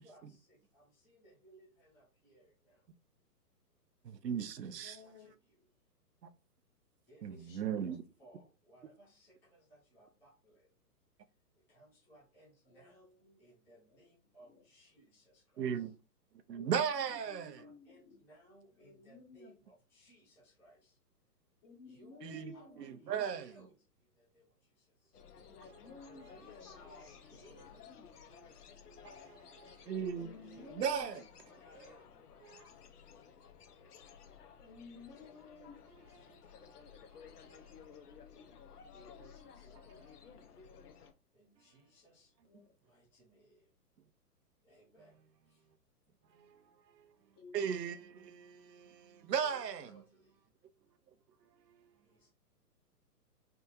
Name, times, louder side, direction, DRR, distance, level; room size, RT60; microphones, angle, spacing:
voice 1, 0.0-2.9 4.7-5.6 7.1-10.7 11.6-15.9 17.2-21.0 21.8-22.3 22.5-23.7 24.0-25.2 26.2-27.9 28.2-29.3 30.4-31.3 31.5-33.5 35.6-37.6 39.1-40.1 41.3-42.3 42.8-43.7 44.6-45.7 49.4-50.4 52.0-52.3, right 1 dB, 5° left, 0.5 m, -63 dB
voice 2, 4.0-5.0 6.2-6.3 7.2-8.0 15.6-16.0 16.5-17.6 22.2-23.5 28.3-28.5 28.9-31.2 32.5-32.7 36.2-36.4 37.5-37.6 46.3-47.2 47.5-50.0 51.4-52.0, right 7 dB, 90° right, 0.6 m, -38 dB
voice 3, 4.8-5.3 7.5-7.9 12.6-12.9 13.2-13.4 13.9-14.1 14.4-14.7 16.5-18.2 18.8-19.5 21.6-23.1 25.3-28.1 30.2-31.2 34.6-35.8 38.7-39.8 42.5-42.7 47.3-48.0, left 5 dB, 50° left, 1.5 m, -56 dB
sound 1, 25.1-41.1, left 7 dB, 70° left, 0.8 m, -56 dB
3.4 x 2.3 x 3.0 m
hypercardioid pair, 130°, 48 cm